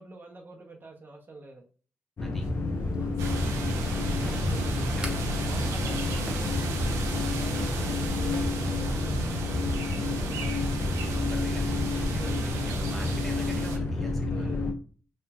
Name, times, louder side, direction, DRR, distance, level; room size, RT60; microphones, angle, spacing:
voice 1, 0.0-1.6 2.8-3.3 4.2-5.1 5.5-7.1 7.4-10.5 12.1-12.3 14.3-14.7, right 3 dB, 40° right, 0.6 m, -45 dB
sound 1, 2.2-14.7, left 2 dB, 50° left, 0.7 m, -30 dB
sound 2, 2.4-7.6, right 1 dB, 15° right, 0.9 m, -47 dB
voice 2, 3.2-3.9 4.2-4.5 5.0-5.1 11.2-11.7 12.0-14.7, equal, 5° left, 1.1 m, -47 dB
sound 3, 3.2-13.8, right 1 dB, 85° right, 0.5 m, -33 dB
2.9 x 2.5 x 2.2 m
supercardioid pair, 45°, 5 cm